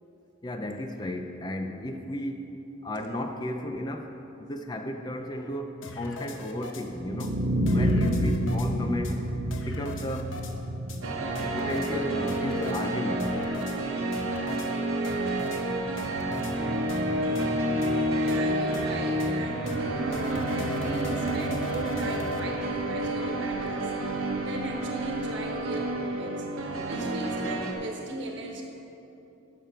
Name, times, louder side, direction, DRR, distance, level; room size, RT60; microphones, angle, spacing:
voice 1, 0.4-2.6 2.8-4.1 4.4-7.4 7.7-9.2 9.6-10.3 11.5-13.3, left 1 dB, 20° left, 5 dB, 0.4 m, -34 dB
sound 1, 5.8-6.8 7.2-7.3 7.7-8.7 9.0-9.1 9.5-10.5 10.9-11.0 11.3-11.9 12.3-12.8 13.2-13.8 14.1-14.7 15.0-15.6 16.0-16.5 16.9-17.0 17.3-17.5 17.8-17.9 18.3-18.4 18.7-18.9 19.2-19.3 19.7-19.8 20.1-22.4, left 2 dB, 65° left, 0.8 m, -40 dB
sound 2, 6.9-12.9, equal, 45° right, 0.7 m, -29 dB
sound 3, 11.0-27.7, right 1 dB, 90° right, 1.1 m, -29 dB
voice 2, 18.2-26.5 26.9-28.6, right 1 dB, 60° right, 1 dB, 1.2 m, -37 dB
11.5 x 6.7 x 4.4 m, 2.9 s
head